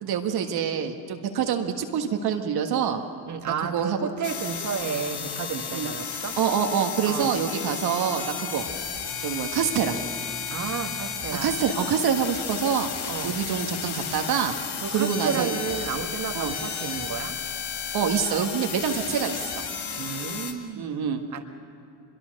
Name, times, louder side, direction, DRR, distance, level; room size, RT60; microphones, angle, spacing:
voice 1, 0.0-3.0 3.5-4.1 5.7-5.9 6.4-8.6 9.2-10.0 11.4-12.9 13.2-14.5 14.9-15.6 16.3-16.6 17.9-19.5 20.8-21.2, right 7 dB, 60° right, 4 dB, 1.7 m, -26 dB
voice 2, 3.3-6.4 7.0-7.4 10.5-11.5 13.1-13.4 14.8-17.4 19.9-21.4, right 6 dB, 40° right, 5 dB, 1.7 m, -32 dB
sound 1, 4.2-20.5, left 7 dB, 60° left, 2.1 m, -33 dB
24.0 x 22.5 x 6.6 m, 2.4 s
supercardioid pair, 75°, 43 cm